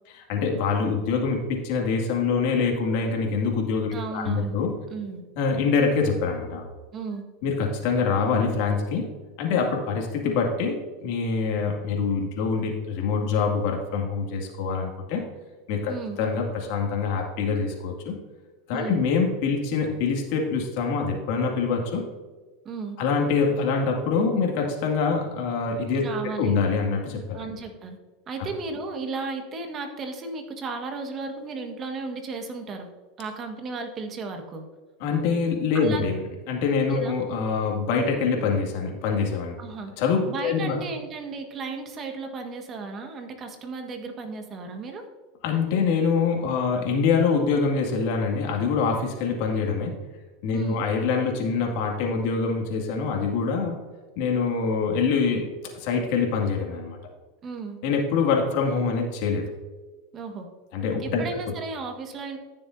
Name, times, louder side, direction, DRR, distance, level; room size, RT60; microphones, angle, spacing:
voice 1, 0.1-4.7 5.4-6.6 7.4-9.1 9.4-15.2 15.7-18.1 18.7-22.0 23.0-26.0 26.4-27.4 35.0-36.2 36.5-39.6 40.0-40.8 45.4-50.0 50.4-53.8 54.2-57.0 57.8-59.5 60.7-61.2, left 5 dB, 65° left, 1 dB, 2.1 m, -25 dB
voice 2, 3.9-4.6 4.9-5.2 6.9-7.2 15.9-16.2 18.7-19.0 22.6-23.0 26.0-26.5 27.3-28.0 28.3-32.9 33.2-34.6 35.7-36.0 36.8-37.2 39.6-39.9 40.3-45.0 50.5-50.8 57.4-57.8 60.1-60.5 61.0-62.4, right 4 dB, 35° right, 5 dB, 1.5 m, -34 dB
14.0 x 6.8 x 2.6 m, 1.3 s
hypercardioid pair, 110°, 0 cm